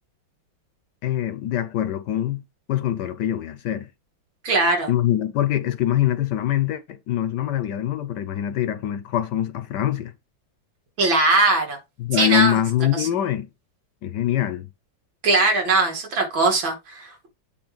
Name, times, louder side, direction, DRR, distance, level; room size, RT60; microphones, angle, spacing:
voice 1, 1.0-2.4 2.7-3.9 4.9-10.1 12.0-13.5 14.0-14.7, left 11 dB, 70° left, 1.2 m, -24 dB
voice 2, 4.4-4.9 11.0-11.8 12.1-12.6 13.0-13.1 15.2-17.3, right 2 dB, 80° right, 3.0 m, -20 dB
8.7 x 3.1 x 5.0 m
omnidirectional pair, 2.1 m